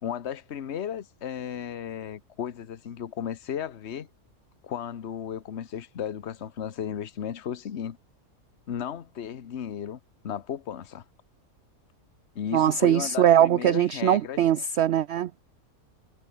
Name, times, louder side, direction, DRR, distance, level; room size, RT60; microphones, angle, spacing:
voice 1, 0.0-4.1 4.6-8.0 8.7-11.0 12.3-14.4, left 9 dB, 50° left, 1.3 m, -34 dB
voice 2, 12.5-15.4, right 10 dB, 65° right, 0.7 m, -21 dB
omnidirectional pair, 1.6 m